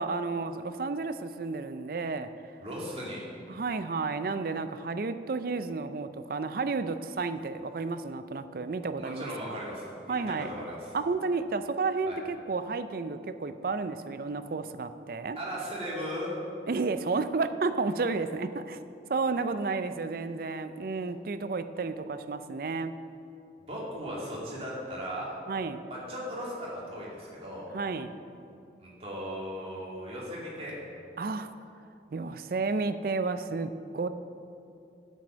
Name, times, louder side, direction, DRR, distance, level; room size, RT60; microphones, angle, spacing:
voice 1, 0.0-2.3 3.5-9.6 10.1-10.5 10.9-15.4 16.7-18.8 19.1-22.9 25.5-25.8 27.7-28.2 31.2-31.5 32.1-34.1, right 4 dB, 50° right, 11 dB, 0.4 m, -32 dB
voice 2, 2.6-3.2 9.0-10.2 10.5-10.9 12.1-12.2 15.4-16.3 23.7-25.4 25.9-27.7 28.8-30.7, equal, 35° right, -5 dB, 2.4 m, -37 dB
9.0 x 7.6 x 6.2 m, 2.7 s
head